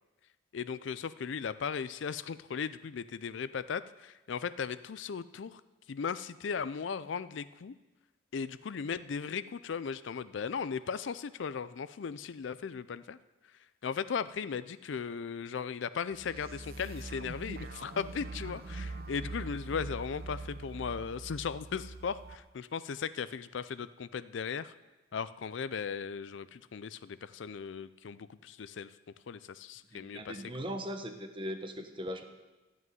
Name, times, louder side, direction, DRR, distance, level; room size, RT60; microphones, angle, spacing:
voice 1, 0.5-5.6 5.9-7.7 8.3-13.2 13.8-24.7 25.1-28.9 29.3-30.5, left 6 dB, 70° left, 15 dB, 0.4 m, -37 dB
sound 1, 16.1-22.3, right 3 dB, 50° right, 0.7 m, -43 dB
voice 2, 29.9-32.2, equal, 25° right, 6 dB, 1.1 m, -39 dB
13.0 x 6.2 x 9.1 m, 1.1 s
head